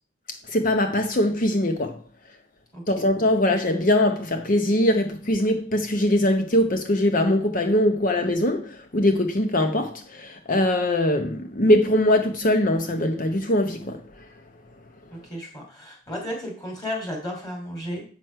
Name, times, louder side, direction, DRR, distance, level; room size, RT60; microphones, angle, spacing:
voice 1, 0.5-2.0 2.9-14.0, left 1 dB, 45° left, 0.8 m, -22 dB
voice 2, 15.1-18.0, equal, 20° left, 2.9 m, -33 dB
7.7 x 6.2 x 5.6 m
head